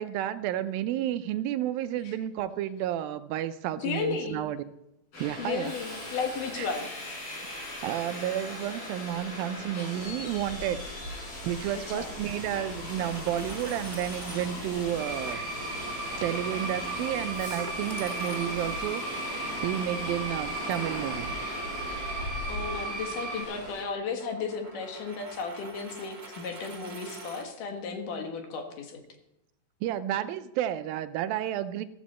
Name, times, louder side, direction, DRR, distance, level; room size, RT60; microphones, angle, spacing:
voice 1, 0.0-4.6 5.2-5.7 6.5-6.7 7.8-10.9 11.4-15.4 16.2-21.4 29.8-31.9, right 11 dB, 85° right, 12 dB, 2.4 m, -31 dB
voice 2, 3.8-4.4 5.4-6.9 11.7-12.1 22.5-29.0, left 5 dB, 65° left, 4 dB, 3.0 m, -34 dB
Subway metro underground, 5.1-23.8, left 1 dB, 85° left, 7.2 m, -38 dB
Coin (dropping), 12.8-14.5 15.1-15.3 17.4-18.8 20.7-27.5, right 2 dB, 30° right, 0.8 m, -46 dB
sound 1, 15.0-23.4, right 3 dB, 55° right, 2.3 m, -36 dB
14.5 x 14.5 x 4.3 m, 0.86 s
omnidirectional pair, 4.2 m